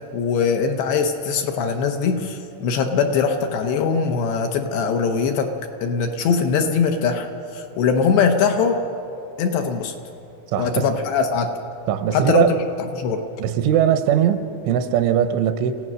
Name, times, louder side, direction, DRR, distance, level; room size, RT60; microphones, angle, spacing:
voice 1, 0.1-5.5 5.8-7.3 7.5-8.8 9.4-9.9 10.6-11.5 12.1-12.5 13.0-13.2, left 5 dB, 75° left, 4 dB, 2.8 m, -21 dB
voice 2, 10.5-10.9 11.9-12.5 13.4-15.8, right 10 dB, 85° right, 10 dB, 3.2 m, -20 dB
27.5 x 16.0 x 6.2 m, 2.8 s
omnidirectional pair, 5.5 m